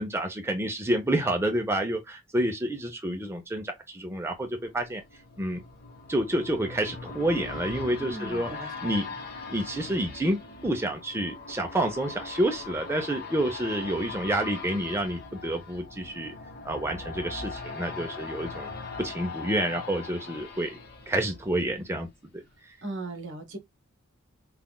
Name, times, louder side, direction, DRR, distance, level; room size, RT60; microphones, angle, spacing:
voice 1, 0.0-5.0 5.4-5.6 6.1-9.1 9.5-16.3 16.6-18.7 19.0-20.8 21.1-22.8, right 1 dB, 10° right, 0.6 m, -29 dB
sound 1, 4.3-22.1 22.5-22.6, left 4 dB, 50° left, 1.0 m, -41 dB
voice 2, 8.0-9.0 22.8-23.6, right 2 dB, 60° right, 1.2 m, -38 dB
5.5 x 2.4 x 2.2 m
head